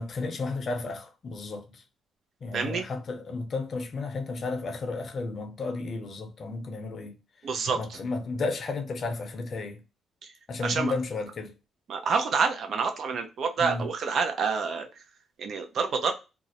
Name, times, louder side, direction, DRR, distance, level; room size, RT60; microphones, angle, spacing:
voice 1, 0.0-1.8 2.4-7.2 7.7-9.8 10.5-11.5 13.6-13.9, left 3 dB, 50° left, 0.6 m, -33 dB
voice 2, 2.5-2.8 7.4-8.0 10.2-10.3 10.6-10.9 11.9-15.0 15.4-16.1, right 5 dB, 60° right, 0.5 m, -28 dB
2.4 x 2.0 x 2.7 m
cardioid pair, 90°, 0 cm